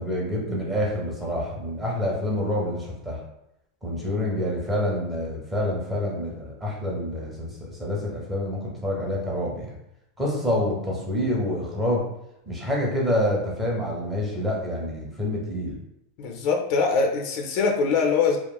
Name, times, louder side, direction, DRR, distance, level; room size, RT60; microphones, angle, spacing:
voice 1, 0.0-3.2 3.8-9.7 10.2-12.1 12.5-15.8, left 1 dB, 10° right, -3 dB, 0.6 m, -27 dB
voice 2, 16.2-18.4, left 5 dB, 45° left, 2 dB, 0.4 m, -23 dB
2.9 x 2.3 x 2.2 m, 0.82 s
supercardioid pair, 170°, 0 cm